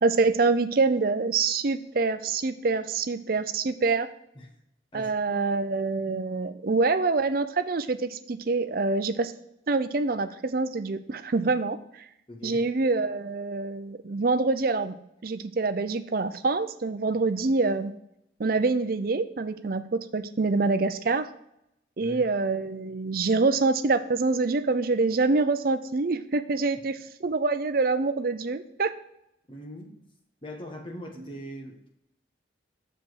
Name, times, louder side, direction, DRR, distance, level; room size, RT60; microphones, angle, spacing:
voice 1, 0.0-4.1 4.9-9.3 9.7-12.1 12.4-17.9 18.4-21.3 22.0-28.9, right 3 dB, 50° right, 10 dB, 0.5 m, -26 dB
voice 2, 4.9-5.4 12.3-12.6 22.0-22.2 29.5-30.0 30.4-31.9, equal, 25° left, 2 dB, 1.2 m, -41 dB
6.9 x 5.0 x 6.1 m, 0.79 s
head